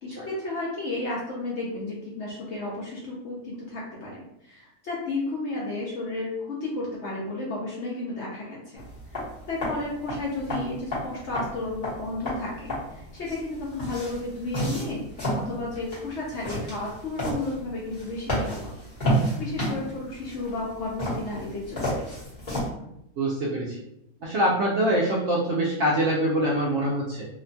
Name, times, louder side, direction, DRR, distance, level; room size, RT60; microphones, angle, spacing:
voice 1, 0.0-8.8 9.5-15.0 15.3-18.7 19.4-22.0, left 2 dB, 65° left, -4 dB, 0.7 m, -33 dB
sound 1, 8.7-22.7, equal, 35° left, 1.0 m, -32 dB
voice 2, 23.2-23.8 24.2-27.3, right 1 dB, 70° right, -4 dB, 0.7 m, -24 dB
2.8 x 2.2 x 2.6 m, 0.81 s
omnidirectional pair, 1.6 m